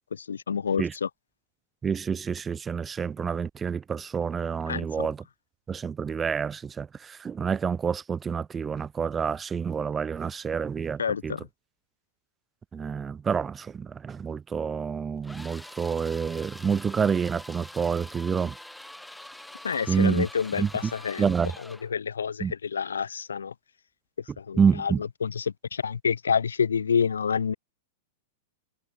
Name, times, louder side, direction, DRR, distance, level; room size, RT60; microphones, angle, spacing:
voice 1, 0.1-1.1 4.7-5.1 11.0-11.4 19.6-21.3 21.9-23.5 24.4-27.5, left 6 dB, 85° left, 2.7 m, -28 dB
voice 2, 1.8-5.2 5.7-11.4 12.7-18.6 19.9-20.3 20.6-20.9 21.2-21.5 22.4-22.5 24.6-25.0, right 6 dB, 20° right, 0.8 m, -28 dB
sound 1, 15.2-21.9, left 1 dB, 5° left, 7.5 m, -45 dB
hypercardioid pair, 110°, 0 cm